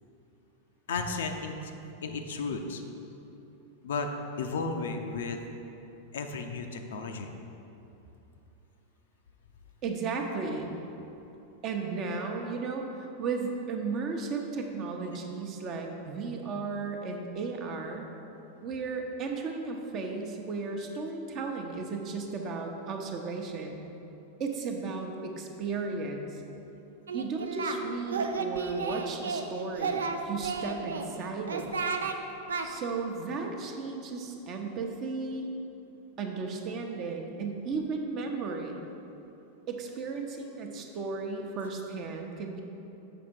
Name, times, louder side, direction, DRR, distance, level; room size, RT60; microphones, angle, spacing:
voice 1, 0.9-1.7 2.0-2.8 3.8-4.1 4.4-5.4 6.1-7.3, left 4 dB, 60° left, 5 dB, 0.5 m, -33 dB
voice 2, 9.8-10.7 11.6-18.1 18.6-23.8 24.4-26.4 27.1-31.7 32.6-35.5 36.2-38.8 39.7-42.6, right 4 dB, 35° right, 2 dB, 0.8 m, -35 dB
Singing, 27.1-27.8 28.1-29.5 29.8-31.1 31.5-32.2 32.5-32.7, right 5 dB, 70° right, 0.4 m, -32 dB
7.0 x 5.0 x 4.6 m, 2.9 s
figure-of-eight pair, 90°, 0 cm